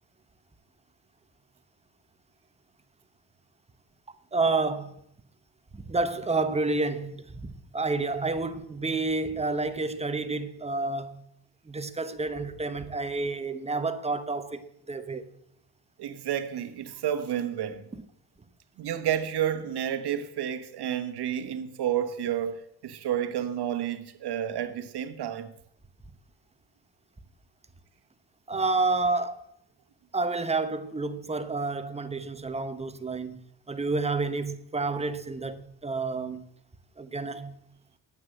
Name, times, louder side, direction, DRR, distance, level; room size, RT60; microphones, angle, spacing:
voice 1, 4.3-5.0 5.7-11.2 11.7-15.3 17.9-18.0 28.5-29.4 30.1-33.4 33.7-36.5 37.0-37.5, right 3 dB, 15° right, 1.0 m, -29 dB
voice 2, 16.0-17.8 18.8-25.5, right 10 dB, 70° right, 1.2 m, -30 dB
9.5 x 8.1 x 7.7 m
cardioid pair, 100°, 42 cm